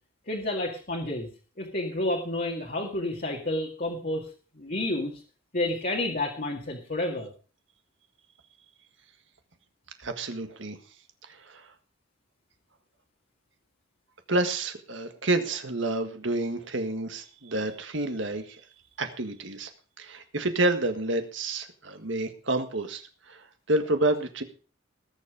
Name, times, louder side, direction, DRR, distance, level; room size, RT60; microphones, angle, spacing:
voice 1, 0.3-1.3 1.6-4.3 4.6-5.2 5.5-7.3, left 1 dB, 45° left, -1 dB, 2.1 m, -30 dB
voice 2, 10.0-10.8 11.3-11.7 14.3-18.7 19.0-19.7 20.0-24.4, right 2 dB, 60° right, 7 dB, 1.7 m, -29 dB
19.5 x 7.4 x 5.0 m, 0.38 s
head